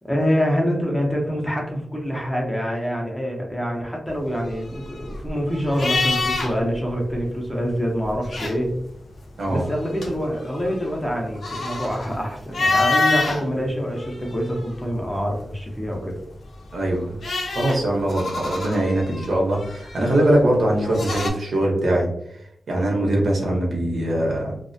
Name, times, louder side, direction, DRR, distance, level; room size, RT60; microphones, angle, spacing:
voice 1, 0.0-8.7 9.5-16.1, equal, 10° left, -1 dB, 0.5 m, -25 dB
sound 1, 4.3-6.8 7.1-7.2 8.0-8.9 9.5-13.4 14.0-15.0 16.5-21.3, left 3 dB, 80° left, 0.5 m, -27 dB
voice 2, 16.7-17.2 17.5-22.1 22.7-24.5, right 1 dB, 65° right, -1 dB, 0.7 m, -21 dB
2.3 x 2.0 x 2.5 m, 0.75 s
wide cardioid pair, 155°, 0 cm